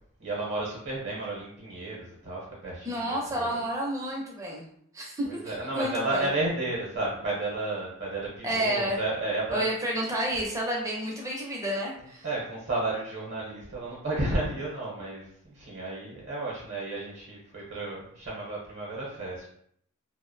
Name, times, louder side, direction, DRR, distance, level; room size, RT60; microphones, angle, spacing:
voice 1, 0.2-3.6 5.3-9.7 12.2-19.5, right 2 dB, 55° right, -5 dB, 0.7 m, -32 dB
voice 2, 2.8-4.6 4.9-5.4 5.7-6.3 8.4-9.0 9.5-12.3, right 1 dB, 15° right, -3 dB, 0.4 m, -30 dB
2.5 x 2.0 x 2.5 m, 0.68 s
head